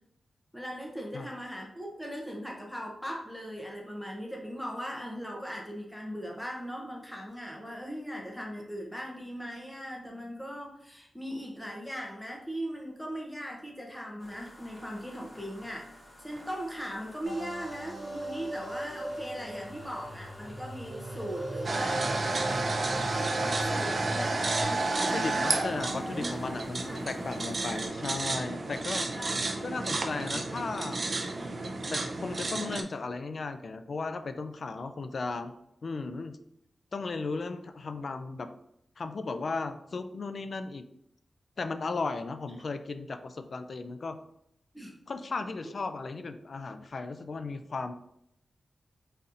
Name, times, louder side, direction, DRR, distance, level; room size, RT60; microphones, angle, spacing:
voice 1, 0.5-15.9 16.2-22.1 22.5-22.6 23.1-23.3 23.5-25.6 26.1-26.3 26.8-27.0 29.1-30.0 31.4-31.5 44.7-44.9 45.6-45.7, equal, 5° left, -1 dB, 0.7 m, -39 dB
sound 1, 14.2-27.9, left 1 dB, 30° left, 1.4 m, -51 dB
sound 2, 17.2-24.6, right 1 dB, 20° right, 1.6 m, -38 dB
sound 3, 21.6-32.8, right 2 dB, 45° right, 0.4 m, -31 dB
voice 2, 25.1-29.1 29.6-31.0 31.9-35.5 35.8-36.4 36.9-38.5 39.0-40.8 41.6-44.2 45.1-47.9, left 3 dB, 55° left, 9 dB, 0.3 m, -35 dB
4.1 x 4.0 x 2.5 m, 0.77 s
wide cardioid pair, 125°, 0 cm